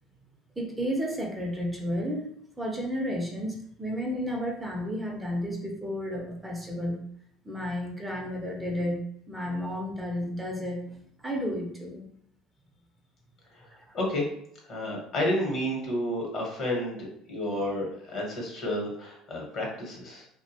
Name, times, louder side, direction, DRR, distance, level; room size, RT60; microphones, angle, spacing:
voice 1, 0.6-2.3 2.6-7.0 7.5-10.8 11.2-12.0, equal, 15° right, 0 dB, 0.6 m, -32 dB
voice 2, 13.9-14.3 14.6-20.3, left 1 dB, 55° left, -1 dB, 1.0 m, -31 dB
2.6 x 2.1 x 2.7 m, 0.70 s
hypercardioid pair, 75°, 0 cm